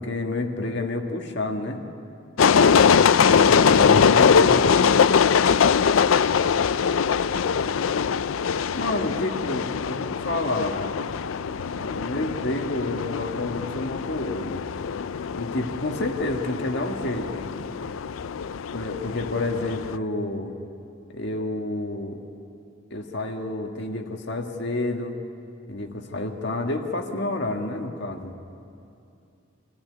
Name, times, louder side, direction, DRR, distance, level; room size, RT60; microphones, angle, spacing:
voice 1, 0.0-1.8 3.2-4.6 8.8-10.8 11.8-14.6 15.3-17.5 18.7-20.5 21.1-22.2 22.9-25.2 25.7-28.3, left 2 dB, 60° left, 3 dB, 1.7 m, -29 dB
sound 1, 2.4-20.0, left 6 dB, 75° left, 0.4 m, -22 dB
voice 2, 6.5-7.9 17.4-17.7, equal, 40° left, -6 dB, 6.1 m, -45 dB
25.0 x 14.5 x 9.6 m, 2.6 s
head